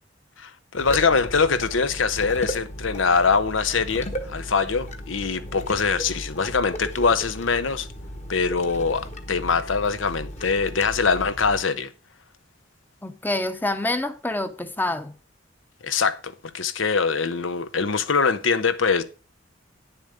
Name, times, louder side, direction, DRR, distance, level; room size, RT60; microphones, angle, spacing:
voice 1, 0.4-7.9 8.3-11.9 15.8-19.0, left 5 dB, 85° left, 1.0 m, -23 dB
sound 1, 0.8-11.6, equal, 35° left, 1.4 m, -36 dB
voice 2, 13.0-15.1, left 2 dB, 10° left, 0.8 m, -27 dB
9.9 x 7.1 x 5.1 m
head